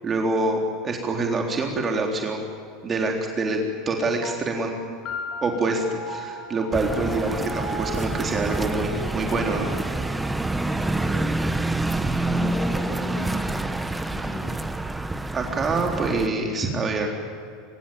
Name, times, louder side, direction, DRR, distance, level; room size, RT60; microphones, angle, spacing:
voice 1, 0.0-2.4 2.8-3.6 3.9-4.7 5.4-9.7 15.3-17.1, right 3 dB, 30° right, 1 dB, 3.7 m, -25 dB
sound 1, 4.2-13.0, left 1 dB, 45° left, 6.5 m, -39 dB
sound 2, 6.7-16.3, right 2 dB, 10° right, 1.5 m, -27 dB
voice 2, 10.6-11.3 12.3-13.8 14.1-14.4, left 1 dB, 25° left, 4 dB, 7.7 m, -36 dB
24.5 x 23.0 x 9.0 m, 2.3 s
hypercardioid pair, 90°, 0 cm